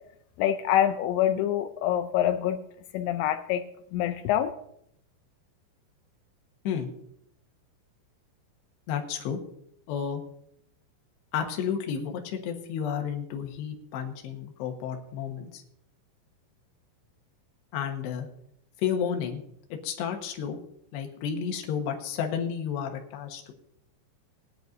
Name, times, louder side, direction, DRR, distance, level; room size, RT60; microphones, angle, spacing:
voice 1, 0.4-2.6 2.9-3.6 3.9-4.5, left 11 dB, 85° left, 8 dB, 2.6 m, -25 dB
voice 2, 8.9-9.4 9.9-10.2 11.3-15.6 17.7-18.3 18.8-19.4 19.7-20.6 20.9-23.5, left 7 dB, 70° left, 3 dB, 3.1 m, -31 dB
19.5 x 10.0 x 2.7 m, 0.74 s
omnidirectional pair, 5.7 m